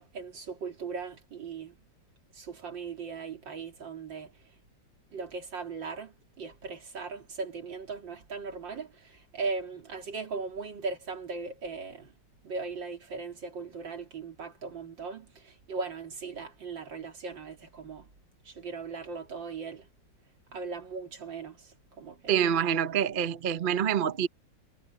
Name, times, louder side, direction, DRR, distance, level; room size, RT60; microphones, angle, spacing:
voice 1, 0.0-1.8 2.3-4.3 5.1-12.1 12.4-18.1 18.5-19.9 20.5-22.3, right 4 dB, 75° right, 3.5 m, -38 dB
voice 2, 22.3-24.3, right 8 dB, 45° right, 0.7 m, -26 dB
omnidirectional pair, 2.0 m